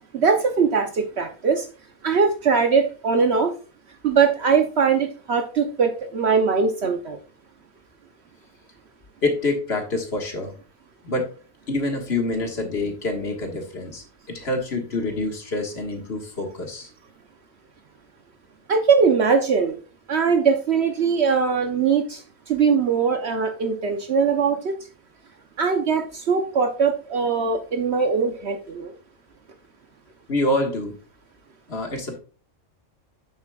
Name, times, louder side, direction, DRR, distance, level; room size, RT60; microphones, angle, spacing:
voice 1, 0.1-1.7 2.0-3.5 4.0-7.2 18.7-19.8 20.1-22.2 22.5-24.7 25.6-28.9, right 5 dB, 60° right, 6 dB, 1.0 m, -21 dB
voice 2, 9.2-10.5 11.0-11.3 11.7-16.9 30.3-31.0 31.7-32.2, left 2 dB, 55° left, 3 dB, 1.8 m, -26 dB
8.9 x 7.0 x 2.3 m, 0.36 s
omnidirectional pair, 1.3 m